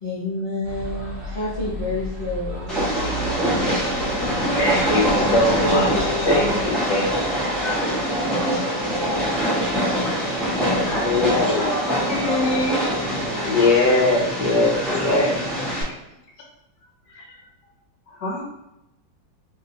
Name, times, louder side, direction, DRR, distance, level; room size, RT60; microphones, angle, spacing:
voice 1, 0.0-2.7 3.0-3.2 5.1-6.3, left 2 dB, 45° left, -11 dB, 0.7 m, -28 dB
sound 1, 0.6-6.7, equal, 45° right, 1.2 m, -34 dB
Train, 2.7-15.8, equal, ahead, 0.4 m, -24 dB
voice 2, 4.6-5.9 6.2-7.4 10.8-11.7 13.5-15.3 17.1-17.3 18.2-18.4, left 2 dB, 70° left, -1 dB, 1.2 m, -21 dB
voice 3, 10.8-12.8, left 2 dB, 90° left, -1 dB, 1.6 m, -27 dB
3.2 x 2.8 x 2.7 m, 0.89 s
omnidirectional pair, 2.1 m